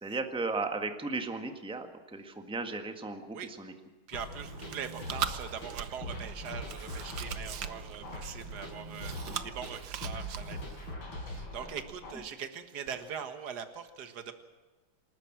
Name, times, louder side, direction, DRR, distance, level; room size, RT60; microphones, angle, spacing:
voice 1, 0.0-3.7, right 3 dB, 5° right, 6 dB, 1.4 m, -35 dB
sound 1, 4.1-12.1, left 1 dB, 70° left, 5.4 m, -42 dB
voice 2, 4.1-9.1 9.4-10.6 11.2-14.3, right 7 dB, 50° right, 8 dB, 2.1 m, -41 dB
Chewing mastication, 4.3-10.9, right 9 dB, 65° right, 1.6 m, -40 dB
28.0 x 13.0 x 7.4 m, 1.3 s
omnidirectional pair, 2.3 m